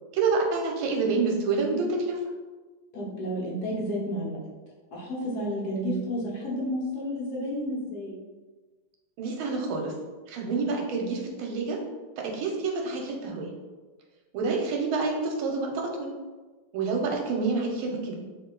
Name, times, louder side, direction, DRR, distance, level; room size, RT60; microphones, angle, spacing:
voice 1, 0.1-2.2 5.7-6.1 9.2-9.9 10.3-11.8 12.2-13.5 14.3-16.1 16.7-18.2, right 4 dB, 80° right, 1 dB, 1.5 m, -28 dB
voice 2, 2.9-4.4 4.9-8.2, equal, 60° left, -4 dB, 1.3 m, -31 dB
3.2 x 2.7 x 3.7 m, 1.3 s
omnidirectional pair, 2.2 m